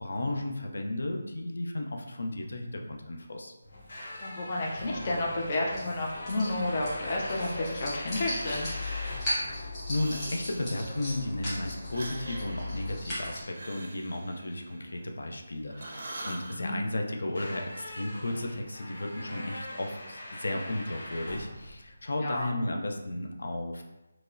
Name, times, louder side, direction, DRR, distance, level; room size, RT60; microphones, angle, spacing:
voice 1, 0.0-3.5 9.5-23.8, left 1 dB, 80° left, 2 dB, 0.5 m, -34 dB
sound 1, 3.6-22.5, left 1 dB, 55° left, 0.9 m, -43 dB
voice 2, 4.2-8.7 16.5-16.8 22.2-22.5, left 2 dB, 25° left, -3 dB, 0.4 m, -31 dB
sound 2, 4.7-13.4, left 1 dB, 10° left, 1.0 m, -37 dB
Breathing, 8.4-9.4 9.8-11.1 11.8-15.4 15.7-16.6, right 1 dB, 50° right, 0.5 m, -45 dB
4.6 x 2.0 x 2.6 m, 0.98 s
hypercardioid pair, 175°, 0 cm